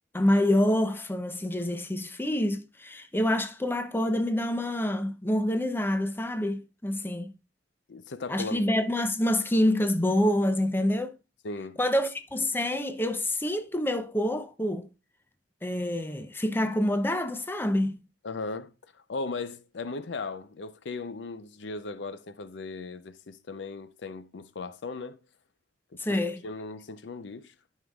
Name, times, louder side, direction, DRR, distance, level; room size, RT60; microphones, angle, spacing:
voice 1, 0.1-7.3 8.3-11.1 11.8-14.9 15.6-18.0 26.0-26.4, left 1 dB, 10° left, 0.6 m, -27 dB
voice 2, 7.9-8.6 11.4-11.8 18.2-25.2 26.1-26.2 26.4-27.5, left 3 dB, 70° left, 0.6 m, -37 dB
12.5 x 5.6 x 2.3 m
head